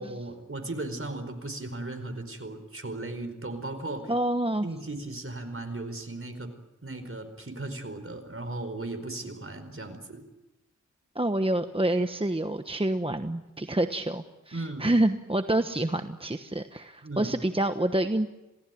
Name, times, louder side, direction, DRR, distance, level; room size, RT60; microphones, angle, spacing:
voice 1, 0.0-4.1 4.6-6.5 6.8-10.2 14.5-14.9 17.0-17.3, right 2 dB, 45° right, 8 dB, 4.7 m, -36 dB
voice 2, 4.1-4.7 11.1-18.3, right 1 dB, 20° right, 8 dB, 1.1 m, -27 dB
27.0 x 18.0 x 9.3 m, 1.0 s
wide cardioid pair, 60°, 30 cm